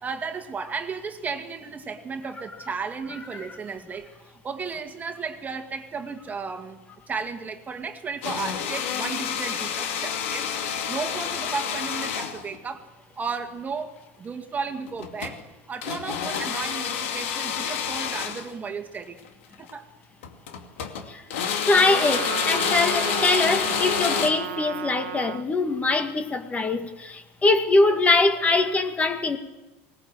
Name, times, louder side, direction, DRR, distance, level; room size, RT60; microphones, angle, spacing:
voice 1, 0.0-4.1 4.4-6.8 7.1-10.5 10.9-12.9 13.2-15.4 15.7-19.2 19.6-19.9, right 5 dB, 25° right, 2.1 m, -34 dB
sound 1, 8.2-12.6 14.9-15.4 15.8-18.5 19.5-19.7 20.2-21.1 21.3-24.3, left 7 dB, 80° left, 2.5 m, -28 dB
voice 2, 21.6-29.4, left 3 dB, 20° left, 1.9 m, -22 dB
Trumpet, 21.7-25.4, right 11 dB, 90° right, 0.8 m, -33 dB
19.5 x 19.0 x 7.8 m
supercardioid pair, 105°, 7 cm